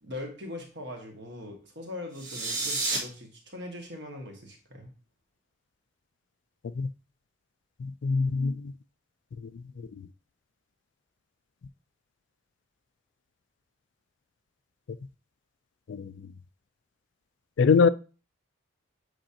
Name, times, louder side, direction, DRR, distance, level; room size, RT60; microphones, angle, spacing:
voice 1, 0.0-4.9, left 1 dB, 55° right, 1.7 m, -41 dB
sound 1, 2.1-3.0, right 3 dB, 70° right, 2.3 m, -30 dB
voice 2, 7.8-8.7 10.0-10.1 15.9-16.3 17.6-17.9, left 5 dB, 60° left, 0.3 m, -24 dB
7.7 x 4.9 x 2.8 m
head